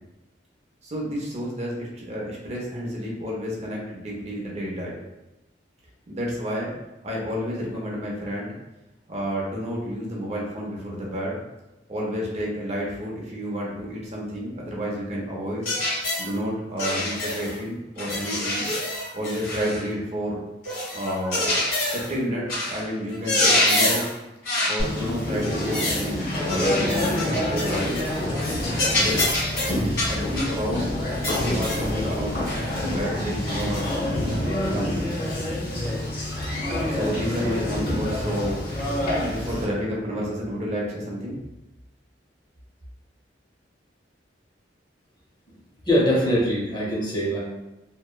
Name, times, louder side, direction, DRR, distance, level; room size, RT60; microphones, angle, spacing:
voice 1, 0.8-5.0 6.1-6.7 7.0-8.6 9.1-11.4 11.9-15.6 16.2-18.7 19.1-20.4 20.9-21.6 21.9-24.0 24.7-28.0 28.9-29.2 29.6-30.8 31.2-35.2 36.9-38.6 39.2-41.4, equal, 40° right, -3 dB, 0.6 m, -30 dB
sound 1, 15.6-16.3 16.8-17.6 18.0-19.9 20.6-22.1 22.5-22.8 23.1-24.1 24.4-24.8 25.4-26.1 26.5-28.1 28.4-28.5 28.7-30.6 31.2-31.9 32.5-32.6 33.7-33.9, left 1 dB, 80° left, 1.5 m, -26 dB
Conversation, 24.8-39.6, left 1 dB, 55° left, 0.8 m, -27 dB
voice 2, 45.8-47.4, equal, 25° left, -4 dB, 0.5 m, -22 dB
2.8 x 2.1 x 2.2 m, 0.99 s
head